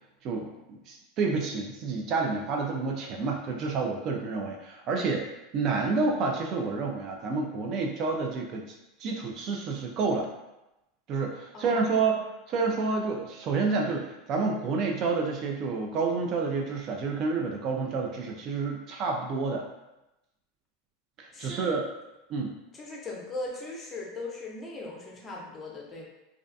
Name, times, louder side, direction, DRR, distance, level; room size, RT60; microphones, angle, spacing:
voice 1, 0.2-5.3 5.5-8.7 9.0-10.3 11.1-12.2 12.5-19.7 21.2-21.9 22.3-22.5, right 4 dB, 50° right, 1 dB, 0.4 m, -29 dB
voice 2, 11.5-12.2 21.3-21.7 22.7-26.1, left 2 dB, 20° left, -2 dB, 0.7 m, -39 dB
2.4 x 2.1 x 2.6 m, 0.95 s
hypercardioid pair, 105°, 0 cm